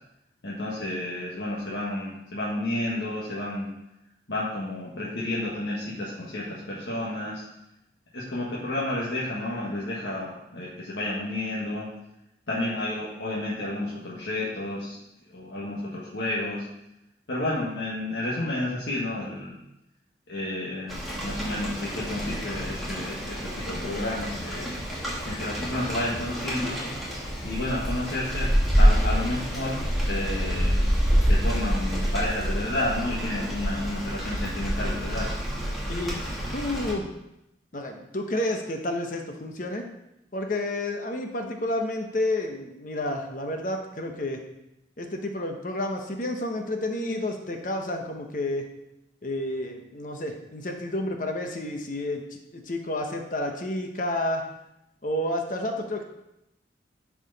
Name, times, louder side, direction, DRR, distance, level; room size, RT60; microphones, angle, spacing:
voice 1, 0.4-3.7 4.3-7.4 8.1-11.9 12.5-15.0 15.3-16.6 17.3-19.5 20.3-24.8 25.3-26.8 27.4-28.5 28.8-29.8 30.1-30.8 31.3-35.3, left 1 dB, 80° left, -6 dB, 1.5 m, -31 dB
Rain, 20.9-36.9, equal, ahead, 2.0 m, -27 dB
voice 2, 35.9-36.2 36.5-37.1 37.7-39.8 40.3-44.4 45.0-48.7 49.2-54.4 55.0-56.0, left 1 dB, 45° left, 4 dB, 0.9 m, -30 dB
11.0 x 4.9 x 4.1 m, 0.86 s
head